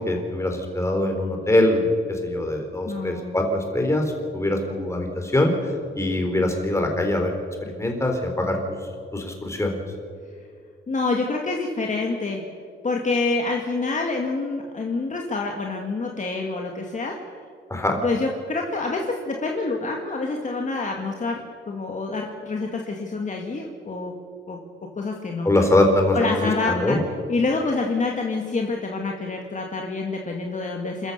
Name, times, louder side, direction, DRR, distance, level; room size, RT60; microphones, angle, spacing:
voice 1, 0.0-4.0 4.3-5.5 6.0-7.3 7.6-8.6 9.1-9.8 17.7-18.0 25.4-27.0, left 1 dB, 15° left, 3 dB, 3.7 m, -23 dB
voice 2, 2.9-3.4 10.9-12.4 12.8-17.2 18.0-24.1 24.5-24.6 25.0-25.5 26.1-27.0 27.3-31.1, left 3 dB, 35° left, 1 dB, 2.0 m, -27 dB
28.5 x 14.0 x 6.8 m, 2.2 s
cardioid pair, 120°, 21 cm